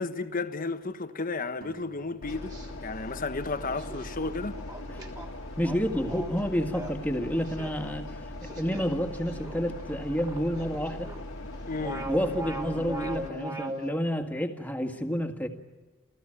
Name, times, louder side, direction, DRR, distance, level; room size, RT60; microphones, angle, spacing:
voice 1, 0.0-2.5 2.8-4.6 11.7-12.1, left 3 dB, 45° left, 1.2 m, -33 dB
sound 1, 1.6-5.2, right 3 dB, 45° right, 2.4 m, -55 dB
sound 2, 2.2-13.3, left 1 dB, 70° left, 1.8 m, -40 dB
sound 3, 2.3-2.7 3.4-11.2 11.5-13.9, right 1 dB, 20° right, 3.0 m, -40 dB
voice 2, 5.6-8.1 8.4-11.1 12.1-15.5, equal, 10° left, 1.8 m, -29 dB
29.5 x 16.0 x 8.9 m
head